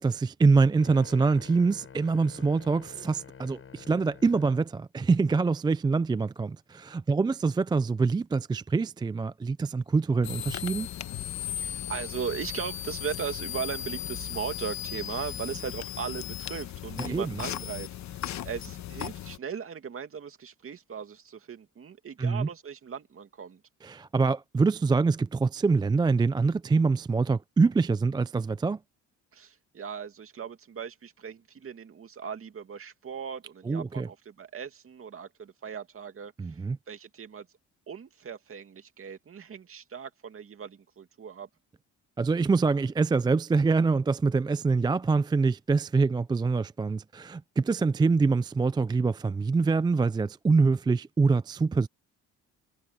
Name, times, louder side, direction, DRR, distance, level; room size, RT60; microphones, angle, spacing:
voice 1, 0.0-10.9 17.1-17.3 22.2-22.5 23.8-28.8 33.7-34.1 36.4-36.8 42.2-51.9, right 4 dB, 15° right, 0.3 m, -25 dB
sound 1, 0.8-4.7, left 6 dB, 45° left, 5.6 m, -48 dB
sound 2, 10.2-19.4, left 11 dB, 65° left, 1.1 m, -36 dB
voice 2, 11.4-23.6 29.3-36.6 36.9-37.5 37.9-41.5, right 7 dB, 45° right, 2.4 m, -38 dB
cardioid pair, 90°, 30 cm